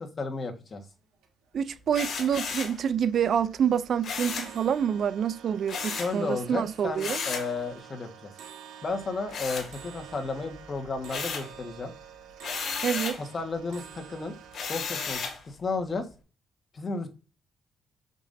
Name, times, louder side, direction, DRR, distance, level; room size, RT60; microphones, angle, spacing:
voice 1, 0.2-0.8 5.9-8.3 8.8-11.9 13.3-14.3 14.7-16.1 16.7-17.1, left 3 dB, 40° left, 1.5 m, -33 dB
sound 1, 0.8-0.9 1.1-1.7 2.1-2.5 2.7-15.1, right 9 dB, 85° right, 1.7 m, -48 dB
voice 2, 1.5-7.2 12.8-13.2, right 8 dB, 60° right, 0.5 m, -27 dB
sound 2, 1.9-2.8 4.0-4.6 5.7-6.2 7.0-7.5 9.3-10.2 10.6-11.6 12.4-13.2 14.5-15.4, left 5 dB, 60° left, 1.9 m, -34 dB
7.0 x 5.3 x 2.7 m
cardioid pair, 90°, 0 cm